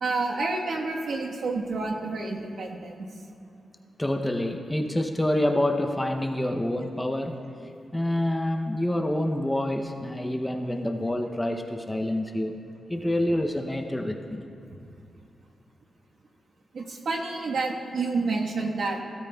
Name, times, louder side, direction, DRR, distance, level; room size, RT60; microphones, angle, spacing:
voice 1, 0.0-2.9 16.7-19.0, right 3 dB, 65° right, 0 dB, 1.2 m, -29 dB
voice 2, 4.0-7.4 7.9-12.6 12.9-14.5, left 1 dB, 10° left, 4 dB, 0.6 m, -27 dB
17.0 x 12.5 x 2.3 m, 2.5 s
wide cardioid pair, 115°, 0 cm